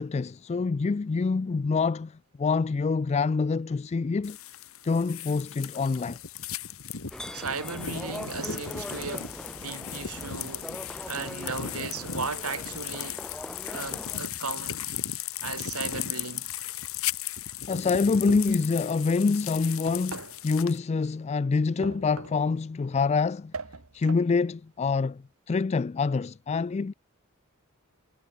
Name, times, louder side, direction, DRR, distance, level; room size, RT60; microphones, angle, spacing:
voice 1, 0.0-4.4 4.8-6.2 17.7-23.5 23.9-26.9, left 4 dB, 30° left, 0.3 m, -26 dB
sound 1, 4.2-20.8, left 10 dB, 70° left, 1.7 m, -36 dB
sound 2, 7.1-14.2, equal, 5° left, 0.7 m, -41 dB
voice 2, 7.3-13.2 13.7-14.9 15.4-16.5, right 4 dB, 85° right, 3.7 m, -36 dB
sound 3, 18.3-18.7 19.9-20.5 21.8-22.5 23.5-24.3, right 3 dB, 70° right, 1.8 m, -40 dB
head